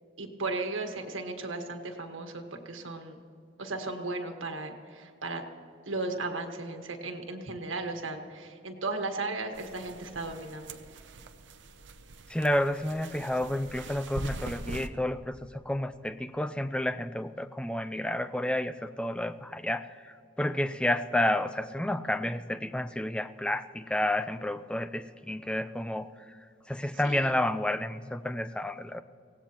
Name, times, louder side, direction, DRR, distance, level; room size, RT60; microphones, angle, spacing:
voice 1, 0.2-3.2 3.6-5.4 5.9-10.8 27.0-27.4, right 3 dB, 90° right, 4 dB, 1.5 m, -36 dB
sound 1, 9.5-14.9, right 3 dB, 65° right, 0.7 m, -43 dB
voice 2, 12.3-15.4 15.7-19.9 20.4-26.1 26.7-29.0, left 1 dB, 5° left, 12 dB, 0.4 m, -30 dB
23.5 x 17.5 x 3.0 m, 2.4 s
head